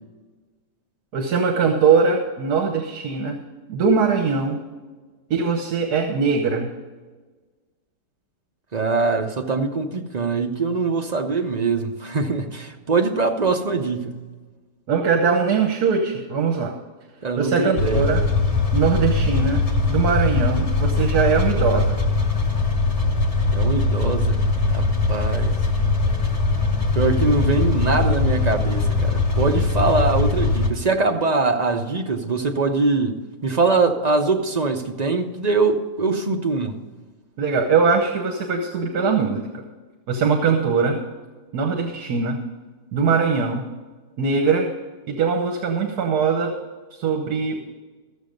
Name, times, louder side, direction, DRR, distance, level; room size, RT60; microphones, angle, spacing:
voice 1, 1.1-3.4 3.7-4.6 5.3-6.7 14.9-16.8 17.4-18.3 18.7-19.6 19.9-22.0 37.4-39.4 40.1-41.0 41.5-42.4 42.9-43.6 44.2-44.7 45.1-46.5 46.9-47.7, right 5 dB, 70° right, 4 dB, 1.6 m, -21 dB
voice 2, 8.7-14.2 17.2-18.0 23.5-24.4 24.7-25.5 26.9-36.7, right 3 dB, 40° right, 3 dB, 0.6 m, -22 dB
sound 1, 17.8-30.7, left 3 dB, 25° left, 1.1 m, -21 dB
14.5 x 7.3 x 5.2 m, 1.3 s
omnidirectional pair, 1.8 m